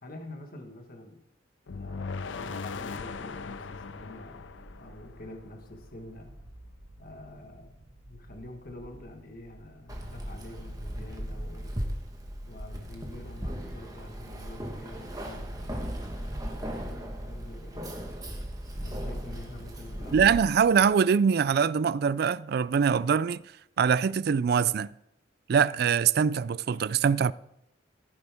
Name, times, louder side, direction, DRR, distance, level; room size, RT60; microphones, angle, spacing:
voice 1, 0.0-1.2 1.7-4.5 4.8-6.3 7.0-11.7 12.5-17.9 18.8-20.4, left 1 dB, 45° left, 1.5 m, -47 dB
sound 1, 1.7-5.7, left 4 dB, 75° left, 0.5 m, -39 dB
sound 2, 2.9-20.9, right 1 dB, 85° right, 1.3 m, -52 dB
Keys jangling, 9.9-20.4, equal, 20° right, 1.3 m, -37 dB
voice 2, 20.1-23.4 23.8-24.9 25.5-27.3, right 6 dB, 55° right, 0.3 m, -23 dB
15.5 x 9.5 x 3.6 m
head